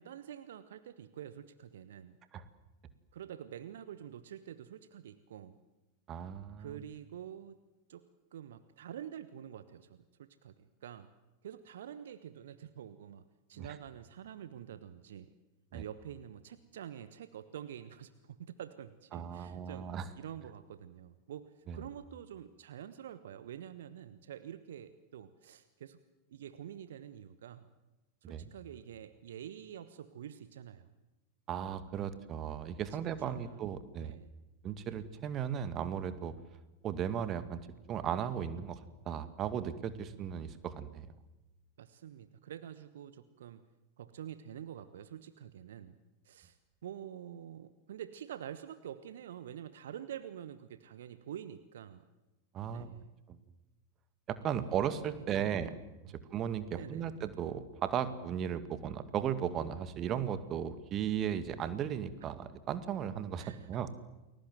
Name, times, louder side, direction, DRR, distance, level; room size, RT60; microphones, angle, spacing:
voice 1, 0.0-2.2 3.1-5.6 6.6-7.6 7.9-8.1 8.3-11.1 11.4-13.2 13.5-15.3 15.7-19.9 20.2-26.0 26.3-27.6 28.2-30.9 33.2-33.6 34.0-34.3 41.8-43.6 44.0-46.0 46.2-52.0 52.7-53.1 54.5-54.7 56.1-56.2 56.7-57.2 63.4-63.7, right 10 dB, 60° right, 13 dB, 1.2 m, -47 dB
voice 2, 6.1-6.8 13.6-13.7 15.7-15.8 19.1-20.1 21.7-21.8 28.2-28.5 31.5-34.2 34.6-36.3 36.8-37.6 37.9-41.1 52.5-52.9 53.3-53.4 54.3-55.8 56.3-63.9, right 9 dB, 30° right, 12 dB, 2.0 m, -36 dB
30.0 x 21.5 x 7.9 m, 1.1 s
figure-of-eight pair, 90°, 0 cm